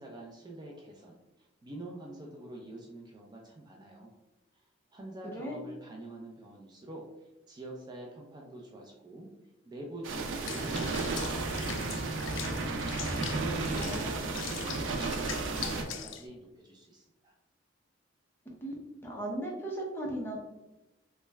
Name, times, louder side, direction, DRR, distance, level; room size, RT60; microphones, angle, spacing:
voice 1, 0.0-4.1 4.5-4.6 4.9-9.4 9.7-12.6 13.3-17.4, right 2 dB, 20° right, -1 dB, 0.4 m, -46 dB
sound 1, 10.0-15.8, right 3 dB, 85° right, 0.5 m, -33 dB
Water / Bathtub (filling or washing), 10.5-16.3, left 9 dB, 80° left, 0.3 m, -42 dB
voice 2, 13.7-14.4 18.6-18.7 19.0-20.4, right 1 dB, 10° left, -2 dB, 0.7 m, -37 dB
3.0 x 2.2 x 3.2 m, 0.99 s
head